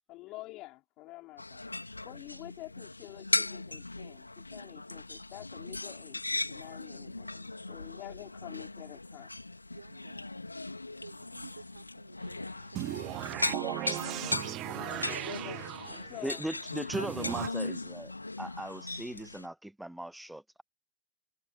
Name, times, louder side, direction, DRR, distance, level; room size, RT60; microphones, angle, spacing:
voice 1, 0.1-1.7 2.0-6.2 6.5-9.3 14.7-15.6 16.1-16.4, left 20 dB, 40° left, 4.8 m, -47 dB
sound 1, 1.4-19.5, left 2 dB, 85° left, 3.3 m, -38 dB
voice 2, 9.7-10.3 11.0-15.6, right 5 dB, 75° right, 4.7 m, -51 dB
sound 2, 12.7-16.2 16.9-17.5, right 16 dB, 35° right, 1.1 m, -37 dB
voice 3, 16.2-18.1 18.4-20.6, right 1 dB, 5° right, 1.5 m, -38 dB
figure-of-eight pair, 90°, 0 cm